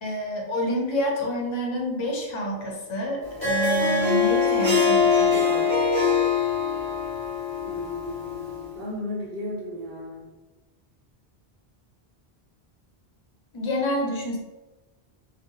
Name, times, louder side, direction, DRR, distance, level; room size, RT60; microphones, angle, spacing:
voice 1, 0.0-5.8 13.5-14.4, equal, 40° left, -1 dB, 0.5 m, -28 dB
Harp, 3.2-8.7, left 5 dB, 20° right, 1.1 m, -23 dB
voice 2, 7.6-10.2, left 1 dB, 70° right, -6 dB, 1.1 m, -35 dB
2.5 x 2.0 x 2.7 m, 1.1 s
omnidirectional pair, 1.0 m